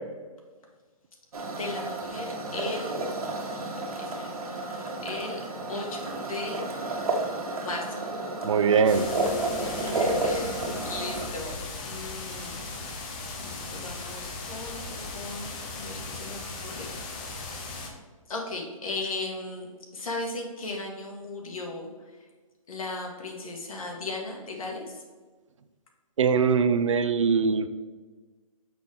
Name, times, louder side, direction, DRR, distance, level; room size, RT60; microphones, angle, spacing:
sound 1, 1.3-11.3, right 2 dB, 80° right, 1.5 m, -31 dB
voice 1, 1.5-2.9 4.0-5.4 5.7-6.6 7.6-8.0 9.7-12.6 13.4-16.9 18.3-21.9 22.2-22.3 22.7-25.0, left 3 dB, 70° left, 0 dB, 1.8 m, -37 dB
voice 2, 8.4-9.1 26.2-27.7, right 6 dB, 60° right, 11 dB, 0.5 m, -22 dB
sound 2, 8.9-17.9, left 3 dB, 15° left, 0.5 m, -38 dB
6.1 x 6.0 x 3.6 m, 1.4 s
hypercardioid pair, 170°, 18 cm